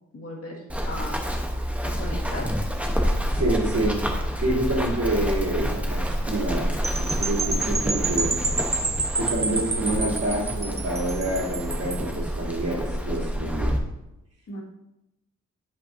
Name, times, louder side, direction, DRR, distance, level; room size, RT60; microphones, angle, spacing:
voice 1, 0.1-1.2 1.8-2.5 14.5-14.6, left 1 dB, 55° left, -2 dB, 1.9 m, -36 dB
Run, 0.7-13.8, equal, 5° right, 0.9 m, -28 dB
voice 2, 3.3-4.0 4.4-8.3 9.2-13.7, right 1 dB, 55° right, -4 dB, 2.8 m, -27 dB
sound 1, 6.8-12.1, right 3 dB, 20° right, 0.5 m, -29 dB
11.0 x 5.2 x 2.7 m, 0.90 s
wide cardioid pair, 115°, 29 cm